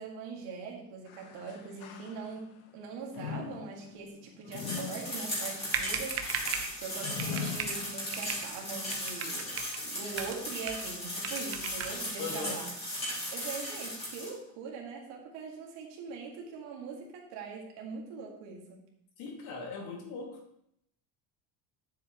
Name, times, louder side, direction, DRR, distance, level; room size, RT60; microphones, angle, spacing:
voice 1, 0.0-12.7 13.3-18.8, right 5 dB, 70° right, -1 dB, 2.2 m, -42 dB
sound 1, 1.0-2.6 3.1-8.4 8.9-9.0 9.8-9.9, left 7 dB, 85° left, 1.1 m, -42 dB
sound 2, 4.5-14.3, left 1 dB, 15° left, 2.6 m, -37 dB
sound 3, 5.7-6.7 7.2-7.8 8.1-8.5 8.9-9.8 10.1-10.9 11.2-12.0, right 7 dB, 30° right, 0.6 m, -37 dB
voice 2, 12.2-12.6 19.2-20.4, left 3 dB, 55° left, 0 dB, 2.2 m, -39 dB
9.5 x 7.5 x 3.0 m, 0.73 s
cardioid pair, 170°, 46 cm